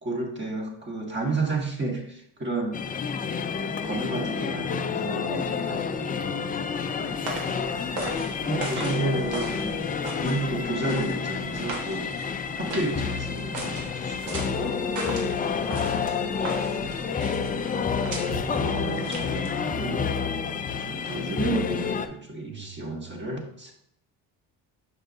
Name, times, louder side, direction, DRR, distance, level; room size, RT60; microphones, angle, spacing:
voice 1, 0.0-2.8 3.5-5.9 8.4-9.9 10.2-12.1 12.5-14.8 15.9-16.1 17.3-20.1 20.8-23.7, right 2 dB, 25° right, 2 dB, 1.6 m, -32 dB
sound 1, 2.7-22.1, left 6 dB, 20° left, 0.3 m, -29 dB
voice 2, 6.2-7.0 15.5-15.9 22.5-23.2, right 8 dB, 60° right, 5 dB, 0.8 m, -46 dB
sound 2, 6.4-19.7, right 2 dB, 85° right, 1.5 m, -38 dB
6.4 x 6.2 x 2.7 m, 0.71 s
supercardioid pair, 90°, 44 cm